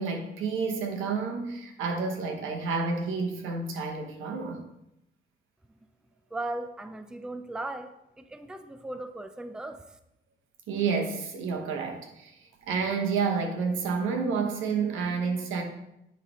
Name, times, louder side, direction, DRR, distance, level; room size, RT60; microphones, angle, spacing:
voice 1, 0.0-4.6 10.7-15.6, right 5 dB, 85° right, 3 dB, 1.2 m, -30 dB
voice 2, 6.3-9.8, right 2 dB, 5° right, 9 dB, 0.5 m, -37 dB
9.9 x 3.4 x 4.2 m, 0.85 s
cardioid pair, 90°, 20 cm